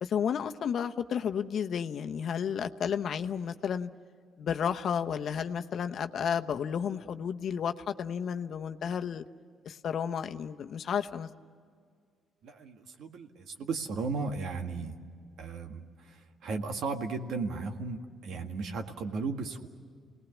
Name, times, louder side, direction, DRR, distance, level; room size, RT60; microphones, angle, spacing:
voice 1, 0.0-3.9 4.4-9.2 9.6-11.3, left 7 dB, 60° left, 7 dB, 0.9 m, -32 dB
voice 2, 12.4-14.9 15.4-19.7, right 4 dB, 75° right, 5 dB, 1.9 m, -35 dB
29.0 x 19.5 x 7.3 m, 2.1 s
cardioid pair, 90°, 0 cm